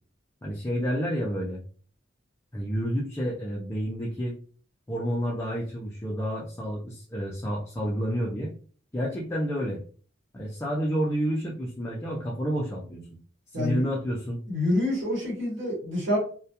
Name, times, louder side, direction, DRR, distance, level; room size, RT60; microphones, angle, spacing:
voice 1, 0.4-1.6 2.5-4.4 4.9-8.5 8.9-9.8 10.3-13.2 13.6-14.4, equal, 15° left, -4 dB, 0.4 m, -29 dB
voice 2, 13.5-13.8 14.5-16.2, left 1 dB, 65° right, -5 dB, 1.1 m, -27 dB
2.2 x 2.1 x 2.7 m, 0.42 s
head